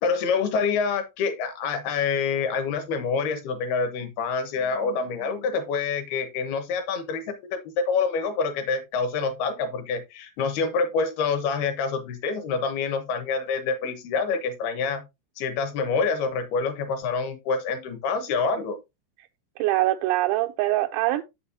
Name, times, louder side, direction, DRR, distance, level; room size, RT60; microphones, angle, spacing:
voice 1, 0.0-15.0 15.4-18.8, left 5 dB, 70° left, 2.5 m, -27 dB
voice 2, 19.6-21.2, right 16 dB, 85° right, 2.7 m, -23 dB
8.2 x 7.9 x 2.7 m
omnidirectional pair, 5.7 m